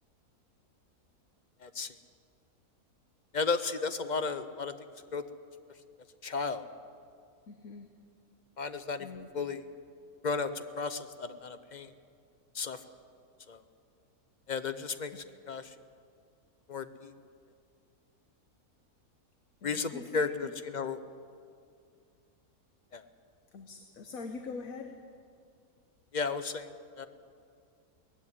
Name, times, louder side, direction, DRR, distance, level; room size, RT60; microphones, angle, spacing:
voice 1, 1.6-1.9 3.3-4.7 5.1-5.2 6.2-6.6 8.6-9.1 9.3-9.6 10.2-11.9 12.5-12.8 13.5-13.6 14.5-15.7 16.7-17.1 19.6-21.0 22.9-23.0 26.1-26.7 27.0-27.1, left 4 dB, 40° left, 11 dB, 0.8 m, -34 dB
voice 2, 7.5-7.9 9.0-9.3 19.6-20.5 23.5-25.0, left 4 dB, 65° left, 6 dB, 1.5 m, -43 dB
19.0 x 15.0 x 9.8 m, 2.3 s
omnidirectional pair, 1.6 m